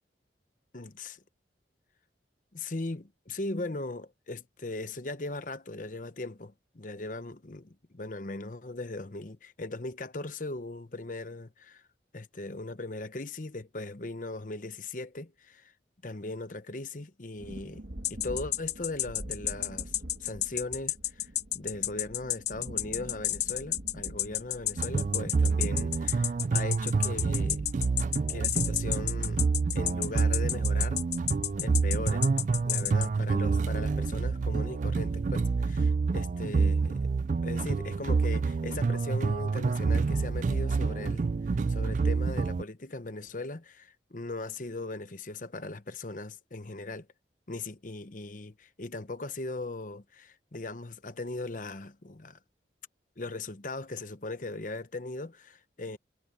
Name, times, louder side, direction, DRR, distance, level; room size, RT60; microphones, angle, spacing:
voice 1, 0.7-1.2 2.5-11.8 12.1-15.7 16.0-17.8 18.1-21.3 21.5-27.6 28.3-31.0 31.6-32.3 32.6-37.1 37.4-41.3 41.7-47.1 47.5-52.4 53.2-56.0, left 2 dB, 45° left, 1.0 m, -39 dB
sound 1, 17.4-35.6, right 1 dB, 60° right, 1.4 m, -48 dB
sound 2, 18.0-33.1, left 14 dB, 65° left, 0.6 m, -30 dB
sound 3, 24.8-42.6, right 4 dB, 45° right, 0.3 m, -28 dB
head